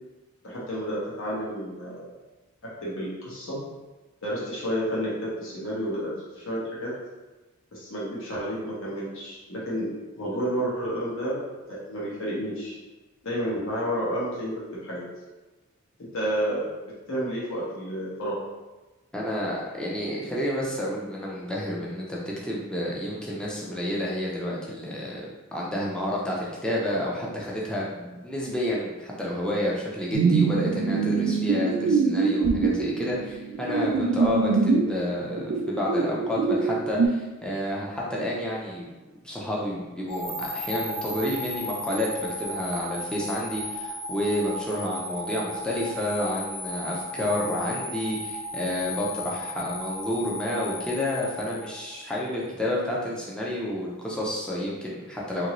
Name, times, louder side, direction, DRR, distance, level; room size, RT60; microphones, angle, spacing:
voice 1, 0.4-2.1 2.6-3.6 4.2-6.9 7.7-9.9 10.2-11.4 11.7-12.8 13.2-15.0 16.1-16.6 17.1-18.4, equal, 60° left, -6 dB, 0.9 m, -30 dB
voice 2, 19.1-38.9 39.2-55.5, left 1 dB, 5° left, -5 dB, 0.4 m, -30 dB
sound 1, 30.1-34.9 35.3-37.1, right 4 dB, 70° right, 0.4 m, -24 dB
sound 2, 40.1-52.3, left 1 dB, 80° left, 1.4 m, -35 dB
2.9 x 2.6 x 2.9 m, 1.2 s
head